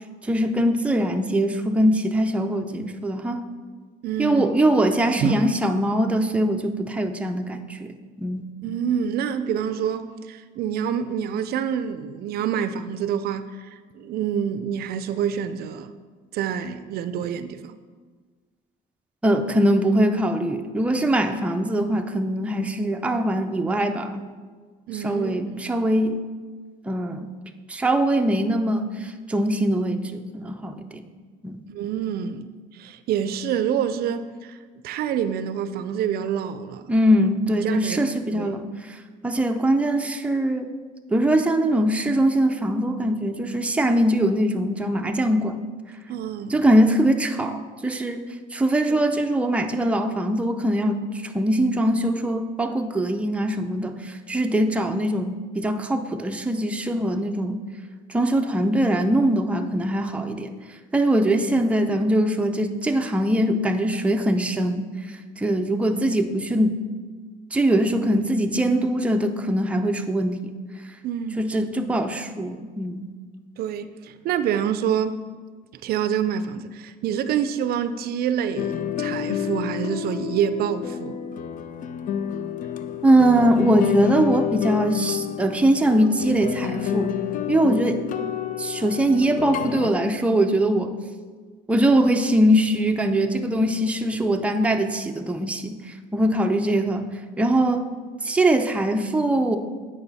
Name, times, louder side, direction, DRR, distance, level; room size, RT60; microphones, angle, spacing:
voice 1, 0.2-3.4 4.2-7.9 8.2-8.5 19.2-24.3 24.9-26.2 26.9-27.3 27.7-31.1 31.4-31.6 36.9-40.7 41.1-45.6 46.5-48.2 48.5-57.6 58.1-60.5 60.9-66.8 67.5-70.5 71.4-73.0 83.0-87.1 87.5-88.0 88.6-91.0 91.7-97.1 97.4-97.9 98.2-99.6, right 1 dB, 5° right, 5 dB, 0.5 m, -22 dB
voice 2, 4.0-4.5 5.2-5.5 8.6-15.9 16.3-17.7 24.9-25.7 31.7-34.6 34.8-36.9 37.6-38.0 38.3-38.6 46.1-46.7 48.9-49.0 71.0-71.4 73.6-75.2 75.8-81.2, right 8 dB, 65° right, 12 dB, 0.4 m, -27 dB
sound 1, 78.6-89.9, left 9 dB, 50° left, 0.4 m, -29 dB
8.7 x 4.9 x 4.1 m, 1.5 s
cardioid pair, 110°, 17 cm